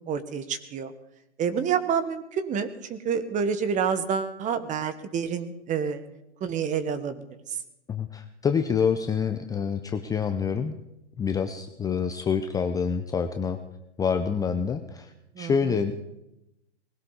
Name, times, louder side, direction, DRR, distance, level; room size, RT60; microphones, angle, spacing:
voice 1, 0.1-0.9 1.4-6.0 6.4-7.2 15.3-15.8, right 7 dB, 20° right, 12 dB, 1.4 m, -28 dB
voice 2, 7.9-10.8 11.2-13.6 14.0-15.9, left 6 dB, 10° left, 7 dB, 0.7 m, -27 dB
20.0 x 17.0 x 4.0 m, 0.88 s
hypercardioid pair, 125°, 34 cm